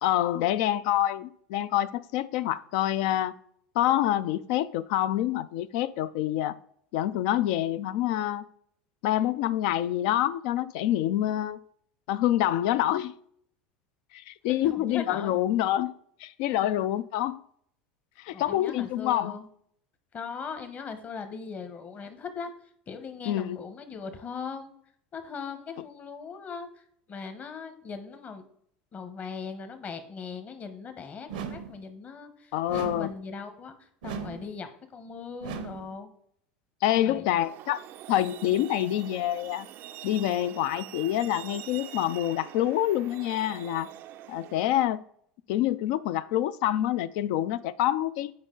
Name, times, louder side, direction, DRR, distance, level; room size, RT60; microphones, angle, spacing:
voice 1, 0.0-3.3 3.7-6.6 6.9-8.5 9.0-11.6 12.1-13.1 14.1-15.9 16.2-17.4 18.2-19.4 23.3-23.6 32.5-33.1 36.8-37.8 38.1-39.7 40.0-43.9 44.3-45.0 45.5-48.3, left 13 dB, 70° left, 0.4 m, -26 dB
voice 2, 14.5-15.4 16.5-16.8 18.3-19.5 20.1-22.5 22.9-24.7 25.1-26.8 27.1-28.4 28.9-36.1 37.0-37.3, left 5 dB, 35° left, 1.1 m, -39 dB
sound 1, 31.3-31.8 32.7-33.2 34.0-34.5 35.4-35.9, right 6 dB, 85° right, 0.8 m, -37 dB
Truck, 37.4-44.8, right 13 dB, 55° right, 0.4 m, -44 dB
8.7 x 5.1 x 3.9 m
hypercardioid pair, 95°, 4 cm